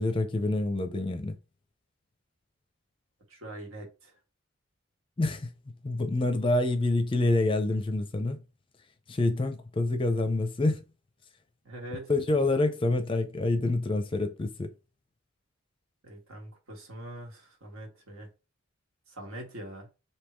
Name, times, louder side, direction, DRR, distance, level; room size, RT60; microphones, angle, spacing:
voice 1, 0.0-1.4 5.2-5.5 5.8-8.4 9.1-10.8 12.1-14.7, left 2 dB, 25° left, 0.5 m, -27 dB
voice 2, 3.3-4.1 11.6-12.1 16.0-18.3 19.1-19.9, right 1 dB, 80° right, 1.6 m, -43 dB
3.5 x 2.8 x 4.4 m
head